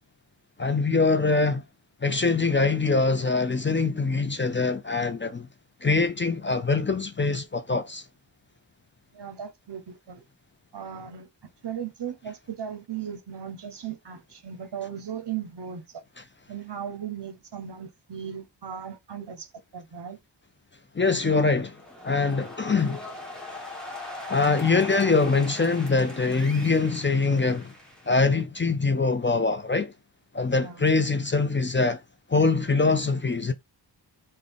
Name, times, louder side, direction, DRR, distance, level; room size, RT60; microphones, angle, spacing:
voice 1, 0.6-1.6 2.0-5.5 5.8-8.0 21.0-21.8 22.0-23.0 24.3-27.7 28.1-29.9 30.3-32.0 32.3-33.5, left 4 dB, 25° left, 0.5 m, -23 dB
voice 2, 9.1-10.2 10.7-11.3 11.6-16.0 16.5-20.2 30.5-30.8, right 8 dB, 65° right, 0.8 m, -37 dB
sound 1, 21.6-28.4, left 2 dB, ahead, 1.4 m, -41 dB
3.7 x 2.2 x 3.4 m
wide cardioid pair, 55°, 45 cm